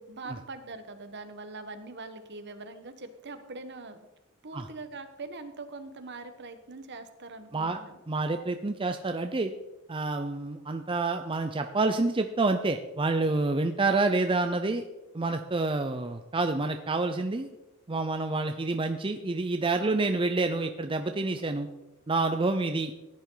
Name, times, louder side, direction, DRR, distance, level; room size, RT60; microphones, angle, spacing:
voice 1, 0.0-4.0 4.4-8.0 19.7-20.1, right 3 dB, 55° right, 8 dB, 1.3 m, -42 dB
voice 2, 8.1-9.5 9.9-14.8 15.1-17.5 17.9-21.7 22.1-22.9, right 3 dB, 25° right, 6 dB, 0.6 m, -28 dB
16.0 x 10.0 x 3.9 m, 1.0 s
head